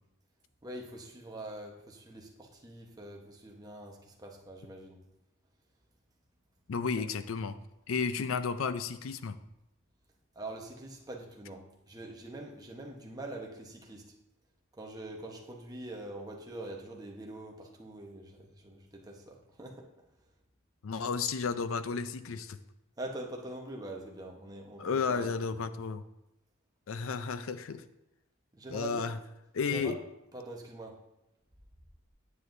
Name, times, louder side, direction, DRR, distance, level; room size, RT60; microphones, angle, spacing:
voice 1, 0.6-5.0 7.0-7.1 10.3-14.1 14.8-19.9 23.0-25.3 28.5-29.1 29.7-30.0 30.3-31.0, right 1 dB, 20° right, 0 dB, 1.0 m, -44 dB
voice 2, 6.7-7.6 7.9-9.4 20.8-22.6 24.8-26.0 26.9-27.8 28.7-29.2 29.5-30.0, left 5 dB, 80° left, 12 dB, 0.5 m, -32 dB
9.5 x 7.7 x 2.6 m, 0.89 s
head